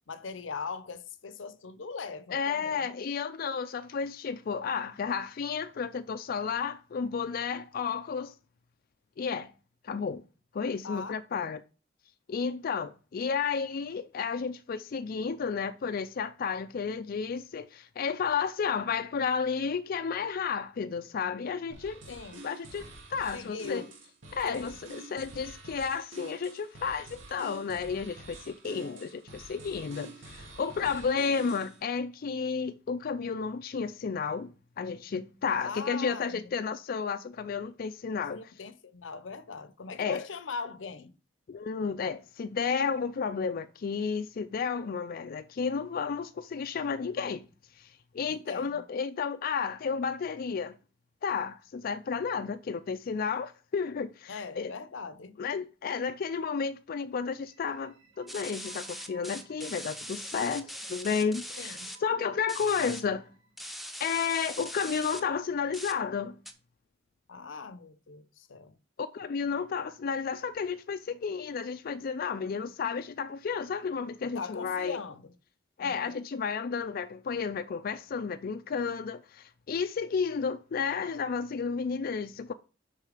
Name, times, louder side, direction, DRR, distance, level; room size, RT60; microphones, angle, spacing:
voice 1, 0.1-2.9 10.8-11.5 22.1-22.4 23.3-23.9 24.4-24.8 28.8-29.1 35.6-36.5 38.3-41.1 48.2-48.8 54.3-55.4 61.6-61.9 67.3-68.8 74.2-75.4 75.8-76.0, left 4 dB, 80° left, 0.7 m, -41 dB
voice 2, 2.3-8.3 9.2-9.5 9.8-10.2 10.5-11.6 12.3-22.0 22.4-22.8 23.1-23.8 24.3-38.4 40.0-40.3 41.5-47.4 47.8-50.8 51.2-54.7 55.4-63.3 64.0-66.4 69.0-75.0 75.8-82.5, left 6 dB, 50° left, 0.4 m, -32 dB
sound 1, 21.7-31.8, right 2 dB, 85° right, 2.5 m, -47 dB
sound 2, 57.4-64.1, right 5 dB, 65° right, 2.2 m, -59 dB
sound 3, 58.3-62.0 62.5-63.0 63.6-65.2 65.7-65.9 66.5-66.6, equal, ahead, 0.8 m, -41 dB
6.6 x 5.6 x 4.9 m
head